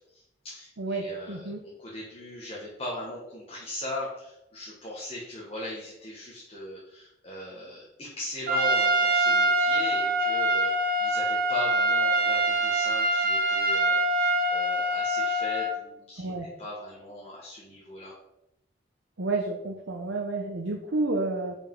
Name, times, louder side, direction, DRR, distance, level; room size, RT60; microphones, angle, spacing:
voice 1, 0.1-18.1, left 1 dB, 30° left, -5 dB, 1.4 m, -39 dB
voice 2, 0.8-1.6 16.2-16.5 19.2-21.6, right 2 dB, 90° right, 2 dB, 0.8 m, -30 dB
Trumpet, 8.5-15.8, right 1 dB, 50° right, 0.9 m, -24 dB
5.3 x 5.2 x 5.3 m, 0.84 s
head